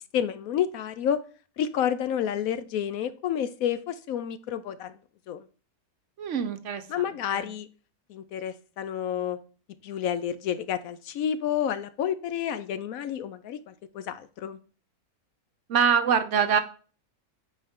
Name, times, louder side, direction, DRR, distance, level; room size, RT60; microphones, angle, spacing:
voice 1, 0.1-1.2 1.6-4.9 5.3-5.5 6.9-7.7 8.1-9.4 9.8-14.6, left 9 dB, 70° left, 13 dB, 0.9 m, -30 dB
voice 2, 6.2-7.0 7.3-7.5 15.7-16.6, right 7 dB, 60° right, 9 dB, 0.9 m, -24 dB
8.5 x 4.6 x 3.6 m, 0.38 s
omnidirectional pair, 1.7 m